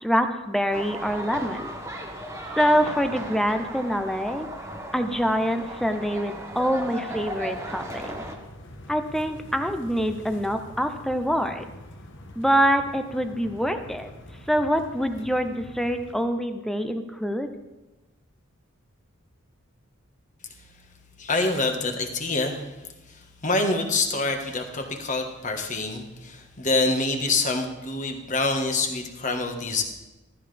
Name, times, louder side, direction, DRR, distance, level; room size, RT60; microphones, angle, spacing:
voice 1, 0.0-1.7 2.6-4.5 4.9-8.2 8.9-11.6 12.4-14.1 14.5-17.5, equal, ahead, 7 dB, 0.6 m, -25 dB
sound 1, 0.7-8.4, right 1 dB, 15° right, 1.2 m, -36 dB
sound 2, 7.1-16.2, left 1 dB, 60° left, 1.2 m, -45 dB
voice 2, 21.2-22.8 23.1-29.8, left 3 dB, 35° left, 4 dB, 1.4 m, -26 dB
14.5 x 13.5 x 3.4 m, 1.1 s
head